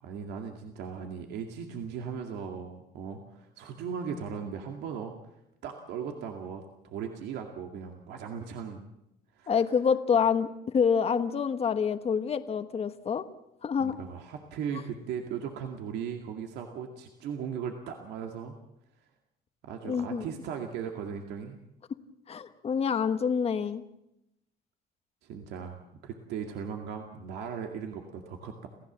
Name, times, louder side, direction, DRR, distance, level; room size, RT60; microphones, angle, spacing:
voice 1, 0.0-5.1 5.6-8.9 9.4-9.5 13.8-18.6 19.6-21.6 25.2-28.7, right 7 dB, 80° right, 3 dB, 2.2 m, -38 dB
voice 2, 9.5-13.2 13.6-14.0 19.8-20.2 22.3-23.8, left 6 dB, 35° left, 10 dB, 1.2 m, -27 dB
28.0 x 15.5 x 7.4 m, 0.86 s
cardioid pair, 110°, 17 cm